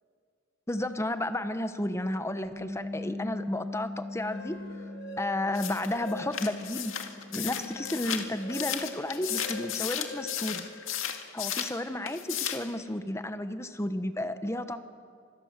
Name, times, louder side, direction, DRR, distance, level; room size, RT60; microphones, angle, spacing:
voice 1, 0.7-4.6 5.2-6.9 7.3-10.7 11.3-14.8, left 1 dB, 15° left, 10 dB, 1.0 m, -32 dB
Bass guitar, 2.4-8.7, left 2 dB, 10° right, 4.3 m, -41 dB
sound 1, 4.0-6.7 7.1-11.4, left 2 dB, 55° left, 3.8 m, -44 dB
sound 2, 5.5-11.8 12.1-12.7, left 10 dB, 80° left, 2.0 m, -34 dB
26.0 x 21.5 x 7.4 m, 2.2 s
head